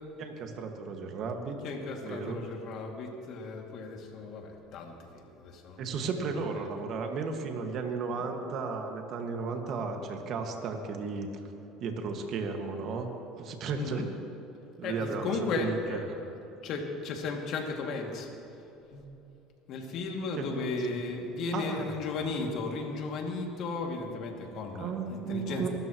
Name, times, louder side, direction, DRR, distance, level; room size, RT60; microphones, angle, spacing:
voice 1, 0.2-1.6 2.0-2.5 5.8-11.3 11.8-13.1 13.4-14.1 14.8-16.2 20.4-20.5 21.5-22.0 24.8-25.7, right 4 dB, 55° right, 3 dB, 1.9 m, -34 dB
voice 2, 1.6-6.1 8.2-8.3 13.7-14.1 14.8-16.1 16.6-18.3 18.9-19.0 19.7-25.7, left 3 dB, 60° left, 1 dB, 2.5 m, -35 dB
24.0 x 13.5 x 3.1 m, 3.0 s
supercardioid pair, 85°, 0 cm